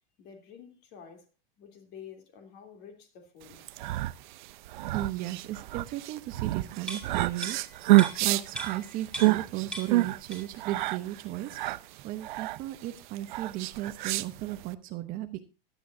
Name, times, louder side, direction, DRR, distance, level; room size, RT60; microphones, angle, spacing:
voice 1, 0.2-1.3 1.6-3.7, left 7 dB, 35° left, 3.2 m, -49 dB
respiracion acelerada, 3.5-14.7, right 19 dB, 55° right, 0.7 m, -28 dB
voice 2, 4.9-11.6 12.0-15.4, right 14 dB, 30° right, 1.0 m, -35 dB
sound 1, 6.9-9.5 9.7-10.7 11.0-11.1, right 1 dB, 5° left, 2.4 m, -40 dB
16.5 x 11.5 x 2.7 m
supercardioid pair, 150°, 29 cm